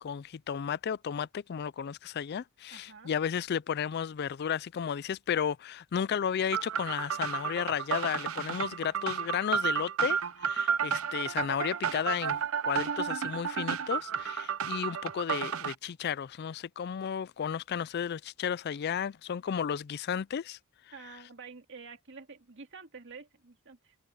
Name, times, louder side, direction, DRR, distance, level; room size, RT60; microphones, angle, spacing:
voice 1, 0.0-20.6, left 8 dB, 50° left, 0.3 m, -33 dB
voice 2, 2.7-3.1 20.9-24.0, right 5 dB, 60° right, 2.3 m, -49 dB
sound 1, 6.5-15.7, right 7 dB, 75° right, 0.8 m, -32 dB
open air
head